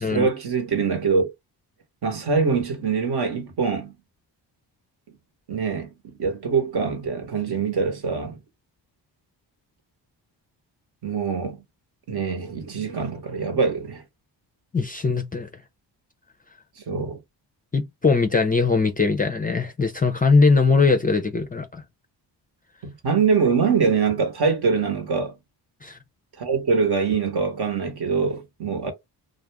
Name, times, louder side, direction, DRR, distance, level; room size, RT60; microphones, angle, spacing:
voice 1, 0.1-1.2 2.0-3.9 5.5-8.4 11.0-11.6 12.1-14.0 16.9-17.2 22.8-25.3 26.4-28.9, right 5 dB, 60° right, 1.0 m, -24 dB
voice 2, 14.7-15.5 17.7-21.8 25.8-26.0, left 4 dB, 20° left, 0.4 m, -20 dB
2.4 x 2.0 x 3.3 m
cardioid pair, 75°, 44 cm